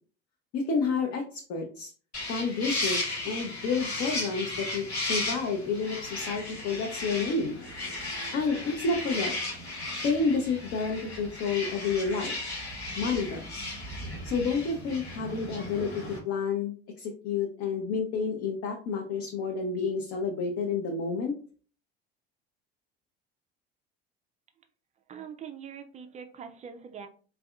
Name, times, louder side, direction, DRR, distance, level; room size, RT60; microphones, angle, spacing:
voice 1, 0.5-1.9 2.3-7.6 8.3-9.3 10.0-12.4 13.0-13.7 14.2-15.9 16.2-21.3, left 4 dB, 45° left, 1 dB, 0.7 m, -30 dB
sound 1, 2.1-16.2, left 2 dB, 90° left, 1.0 m, -35 dB
voice 2, 25.1-27.1, right 7 dB, 25° right, 6 dB, 0.3 m, -43 dB
3.4 x 2.3 x 2.2 m, 0.40 s
figure-of-eight pair, 65°, 32 cm